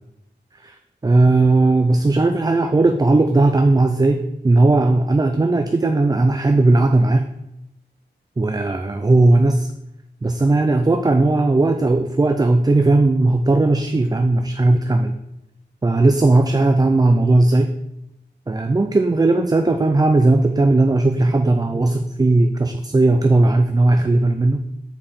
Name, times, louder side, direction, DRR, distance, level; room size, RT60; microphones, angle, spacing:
voice 1, 1.0-7.3 8.4-9.7 10.2-15.1 15.8-17.7 18.5-24.6, right 2 dB, 20° right, 6 dB, 0.4 m, -17 dB
7.4 x 4.7 x 4.3 m, 0.87 s
wide cardioid pair, 85°, 19 cm